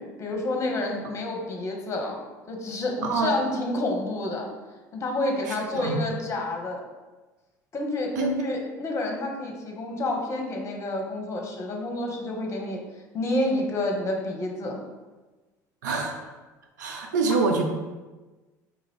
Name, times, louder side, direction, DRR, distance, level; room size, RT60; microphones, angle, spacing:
voice 1, 0.0-2.2 2.5-4.5 4.9-6.8 7.7-12.8 13.1-14.8, left 2 dB, 30° left, 1 dB, 0.8 m, -29 dB
voice 2, 15.8-16.2 16.8-17.6, right 4 dB, 80° right, 3 dB, 0.4 m, -25 dB
3.5 x 2.4 x 3.4 m, 1.2 s
hypercardioid pair, 70°, 10 cm